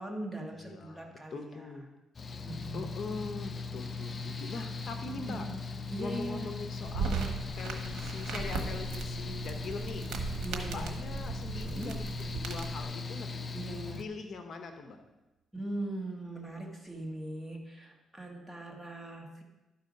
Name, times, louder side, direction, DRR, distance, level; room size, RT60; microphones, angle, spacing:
voice 1, 0.0-1.7 2.4-2.9 5.3-5.6 5.9-6.5 10.4-11.0 11.8-12.0 13.5-14.0 15.5-19.4, right 1 dB, 5° right, 0 dB, 1.7 m, -40 dB
voice 2, 0.6-1.9 2.7-5.4 6.0-10.1 10.5-13.5 14.0-15.0, left 4 dB, 55° left, 6 dB, 0.9 m, -42 dB
Mechanical fan, 2.1-14.0, left 4 dB, 35° left, 0.5 m, -39 dB
sound 1, 6.9-12.9, right 4 dB, 75° right, 1.2 m, -38 dB
sound 2, 10.1-14.1, right 8 dB, 45° right, 1.7 m, -47 dB
12.0 x 4.6 x 5.3 m, 1.0 s
cardioid pair, 90°, 0 cm